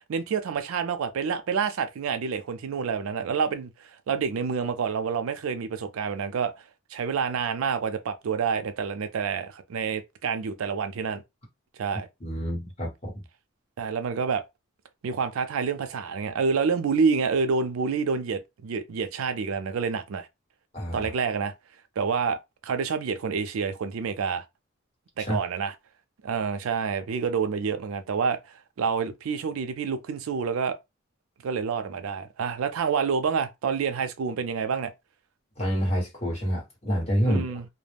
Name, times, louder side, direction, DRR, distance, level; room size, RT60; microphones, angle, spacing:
voice 1, 0.1-6.5 6.9-11.2 11.8-12.1 13.8-14.4 15.0-20.3 20.9-21.5 22.0-22.4 22.6-24.4 25.2-25.7 26.2-30.8 31.4-34.9 37.3-37.6, right 5 dB, 75° right, 0.4 m, -28 dB
voice 2, 12.2-13.1 20.7-21.1 25.2-25.4 35.6-37.5, equal, 30° left, 1.2 m, -27 dB
2.3 x 2.0 x 3.3 m
head